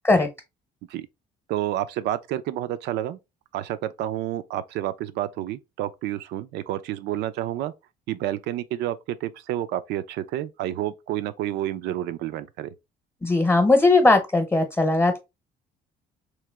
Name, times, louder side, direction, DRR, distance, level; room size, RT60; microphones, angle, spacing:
voice 1, 1.5-3.2 3.5-7.7 8.1-12.7, right 13 dB, 80° right, 0.5 m, -29 dB
voice 2, 13.2-15.2, left 2 dB, 15° left, 0.8 m, -18 dB
3.2 x 2.9 x 3.4 m
cardioid pair, 110°, 17 cm